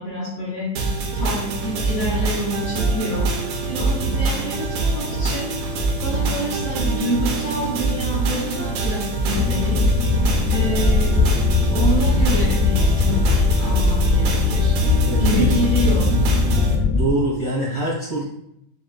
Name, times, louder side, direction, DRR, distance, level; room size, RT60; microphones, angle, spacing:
voice 1, 0.0-3.3 3.7-9.8 10.5-11.4 11.7-14.7 15.2-16.2, equal, 65° left, -9 dB, 1.6 m, -28 dB
sound 1, 0.8-16.8, right 3 dB, 90° right, 1.6 m, -24 dB
sound 2, 9.3-17.1, left 5 dB, 90° left, 2.4 m, -20 dB
voice 2, 15.0-15.7 16.7-18.2, right 1 dB, 75° right, -9 dB, 1.0 m, -25 dB
6.9 x 2.3 x 2.3 m, 0.77 s
omnidirectional pair, 3.9 m